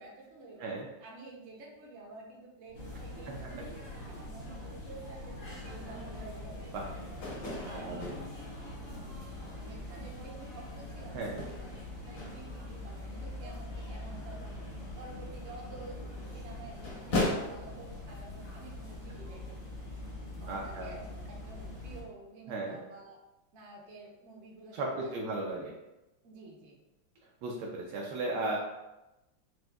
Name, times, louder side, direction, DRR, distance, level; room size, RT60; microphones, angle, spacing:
voice 1, 0.0-0.7 1.0-3.6 4.1-6.9 7.6-8.0 9.5-11.8 12.1-14.6 15.0-16.0 16.3-19.6 20.4-23.2 23.5-25.1 26.2-26.8, right 2 dB, 55° right, -2 dB, 0.8 m, -50 dB
sound 1, 2.7-22.0, left 1 dB, 80° left, 2.3 m, -44 dB
sound 2, 2.7-10.2, right 5 dB, 85° right, 1.7 m, -51 dB
sound 3, 5.4-17.3, left 2 dB, 45° left, 0.8 m, -41 dB
voice 2, 7.7-8.2 11.1-11.4 20.5-20.9 22.5-22.8 24.7-25.7 27.4-28.6, right 2 dB, 70° right, -2 dB, 1.1 m, -35 dB
6.2 x 2.5 x 2.3 m, 0.99 s
omnidirectional pair, 2.0 m